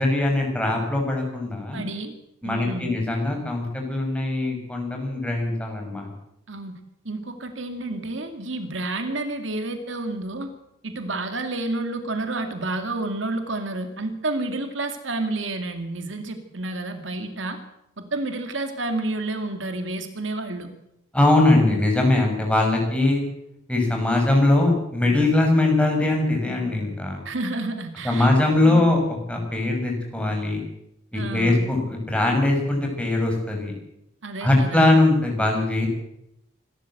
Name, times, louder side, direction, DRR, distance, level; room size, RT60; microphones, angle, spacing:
voice 1, 0.0-1.8 2.4-6.1 21.1-23.2 23.7-27.2 28.0-30.6 31.1-33.7 34.4-35.9, left 2 dB, 5° left, 1 dB, 6.3 m, -21 dB
voice 2, 1.7-2.1 2.4-3.0 6.5-6.8 7.0-10.5 10.8-17.6 18.0-20.7 27.2-28.3 28.6-28.8 31.1-31.6 34.2-35.0, right 2 dB, 70° right, 7 dB, 2.4 m, -30 dB
26.0 x 13.0 x 7.9 m, 0.81 s
head